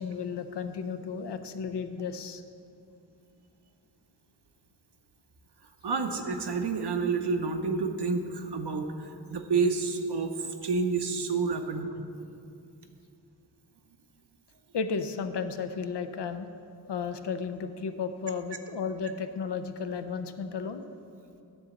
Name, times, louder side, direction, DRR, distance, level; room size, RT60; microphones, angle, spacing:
voice 1, 0.0-2.4 14.7-16.5 16.9-20.8, left 5 dB, 80° left, 9 dB, 0.6 m, -33 dB
voice 2, 5.8-11.9, right 4 dB, 70° right, 6 dB, 0.7 m, -29 dB
10.0 x 4.0 x 7.0 m, 2.5 s
wide cardioid pair, 55°, 41 cm